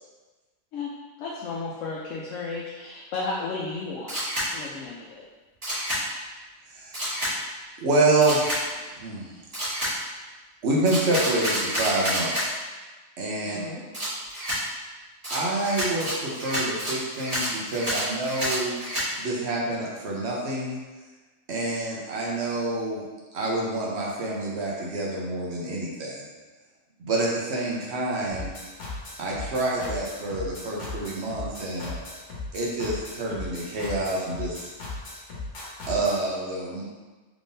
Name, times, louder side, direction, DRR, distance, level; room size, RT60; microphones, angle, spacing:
voice 1, 1.2-4.2 4.5-5.2 13.4-14.0, left 3 dB, 85° left, -4 dB, 0.9 m, -33 dB
Camera, 4.1-4.5 5.6-6.0 6.9-7.3 8.2-8.6 9.5-9.9 10.9-12.5 13.9-14.6 15.2-19.1, equal, 30° right, 1.5 m, -28 dB
voice 2, 7.8-9.4 9.7-10.0 10.6-12.5 13.2-13.6 15.3-18.7 19.2-20.8 21.5-23.0 23.3-26.3 27.0-28.5 29.2-31.9 32.5-34.7 35.9-36.8, right 2 dB, 65° right, -4 dB, 1.0 m, -27 dB
sound 1, 28.3-36.2, left 3 dB, 65° left, 1.2 m, -37 dB
3.6 x 3.5 x 2.6 m, 1.3 s
omnidirectional pair, 1.3 m